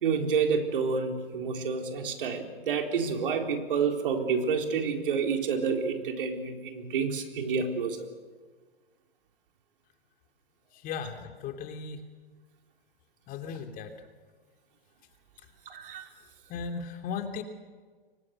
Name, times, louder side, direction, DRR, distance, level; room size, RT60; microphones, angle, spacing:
voice 1, 0.0-8.1 15.7-16.0, right 5 dB, 65° right, 4 dB, 4.3 m, -29 dB
voice 2, 10.7-12.0 13.3-13.9 16.5-17.4, left 6 dB, 30° left, 5 dB, 3.1 m, -36 dB
29.0 x 24.5 x 6.7 m, 1.5 s
hypercardioid pair, 120°, 29 cm